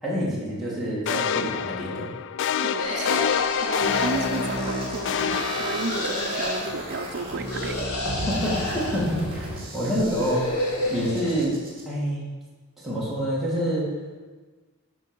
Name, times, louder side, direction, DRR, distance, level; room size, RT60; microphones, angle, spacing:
voice 1, 0.0-2.1 8.3-11.6 11.8-12.3 12.8-13.9, equal, ahead, -8 dB, 2.4 m, -27 dB
sound 1, 1.1-6.4, left 8 dB, 55° left, 0.3 m, -27 dB
voice 2, 2.6-3.3 3.6-5.3 5.6-7.8, right 3 dB, 50° right, 6 dB, 0.7 m, -33 dB
sound 2, 2.8-5.1 5.7-6.6 7.4-9.1 9.9-11.4, left 1 dB, 85° left, 1.9 m, -30 dB
sound 3, 3.8-11.8, right 1 dB, 25° right, 2.5 m, -34 dB
11.0 x 4.7 x 6.3 m, 1.4 s
head